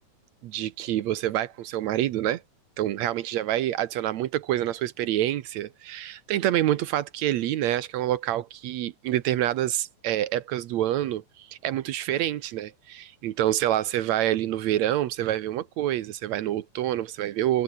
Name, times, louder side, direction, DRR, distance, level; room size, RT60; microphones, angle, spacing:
voice 1, 0.4-2.4 2.8-17.6, right 13 dB, 70° right, 1.8 m, -27 dB
open air
omnidirectional pair, 4.0 m